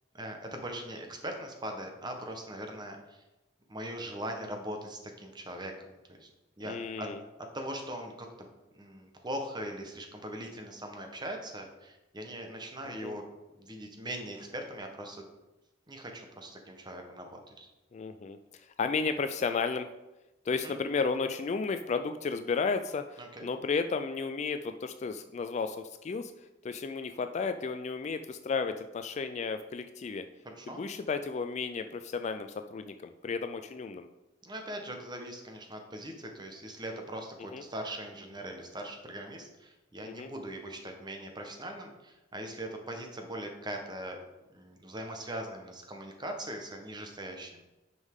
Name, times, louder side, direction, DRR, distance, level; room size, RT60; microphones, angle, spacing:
voice 1, 0.1-3.2 3.7-6.3 6.6-7.1 7.4-8.3 8.7-13.3 13.6-15.2 15.9-17.7 20.6-20.7 23.2-23.5 30.4-30.8 34.4-44.2 44.5-47.6, right 1 dB, 20° right, 3 dB, 1.0 m, -41 dB
voice 2, 6.6-7.2 12.9-13.2 17.9-18.4 18.8-19.9 20.5-25.8 26.0-26.3 26.6-30.2 30.7-34.1 37.5-37.6 40.0-40.3, left 4 dB, 35° left, 9 dB, 0.3 m, -33 dB
9.6 x 5.4 x 3.6 m, 1.0 s
head